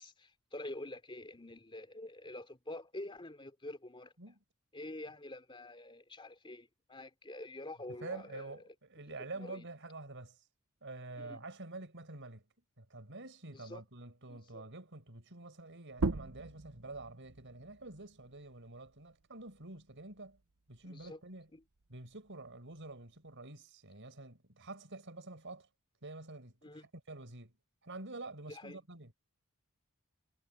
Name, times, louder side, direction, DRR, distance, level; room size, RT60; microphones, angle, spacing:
voice 1, 0.0-4.1 4.7-8.5 9.2-9.6 11.2-11.4 13.5-13.8 14.3-14.7 20.8-21.2 21.5-21.6 26.6-26.9 28.5-28.8, left 1 dB, 25° left, 3.0 m, -47 dB
voice 2, 7.9-10.4 10.8-12.5 12.8-20.4 20.7-21.5 21.9-25.7 26.0-27.6 27.8-29.1, right 2 dB, 55° right, 5.3 m, -48 dB
sound 1, 15.9-21.1 21.5-23.3, right 3 dB, 85° right, 1.0 m, -42 dB
head